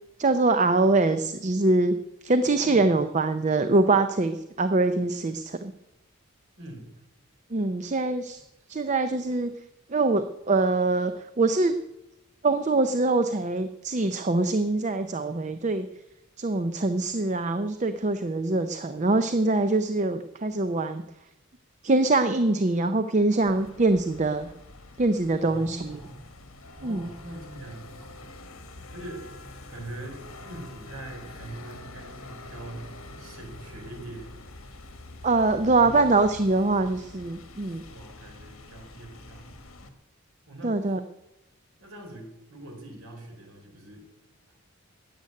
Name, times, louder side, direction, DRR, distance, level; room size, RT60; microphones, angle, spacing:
voice 1, 0.2-1.9 2.2-5.7 7.5-8.4 8.7-9.5 9.9-11.8 12.4-15.9 16.4-21.0 21.8-24.5 25.0-26.0 26.8-27.1 35.2-37.8 40.6-41.0, right 2 dB, 35° right, 9 dB, 0.5 m, -24 dB
voice 2, 2.6-2.9 6.6-6.9 25.4-26.3 26.8-28.3 28.9-29.3 29.7-34.3 34.9-35.0 35.8-36.1 37.9-39.6 40.5-41.0 41.8-44.1, right 1 dB, 75° right, 3 dB, 4.0 m, -42 dB
sound 1, 23.4-39.9, left 2 dB, 70° left, 1.7 m, -45 dB
13.0 x 7.9 x 9.6 m, 0.94 s
head